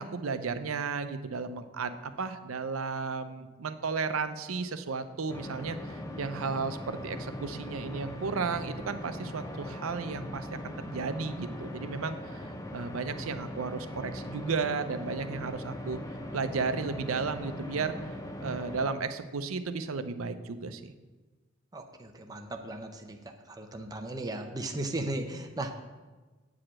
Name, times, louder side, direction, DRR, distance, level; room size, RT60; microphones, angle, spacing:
voice 1, 0.0-12.4 12.7-16.0 16.3-17.9 18.4-20.9, right 4 dB, 90° right, 10 dB, 0.6 m, -34 dB
sound 1, 5.3-18.9, left 1 dB, 15° left, 0.8 m, -40 dB
voice 2, 21.7-23.2 23.5-25.7, right 2 dB, 20° right, 3 dB, 0.7 m, -36 dB
8.5 x 4.9 x 7.5 m, 1.3 s
head